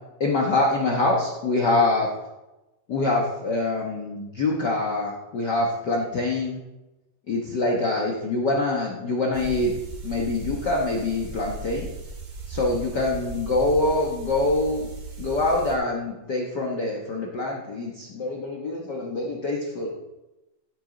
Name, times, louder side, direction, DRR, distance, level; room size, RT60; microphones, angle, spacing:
voice 1, 0.2-2.1 2.9-6.6 7.3-9.7 10.0-11.9 12.5-14.9 15.2-19.9, left 2 dB, 90° left, -1 dB, 0.9 m, -25 dB
sound 1, 9.3-15.8, right 4 dB, 55° right, 3.3 m, -37 dB
15.5 x 8.5 x 4.0 m, 1.0 s
omnidirectional pair, 3.9 m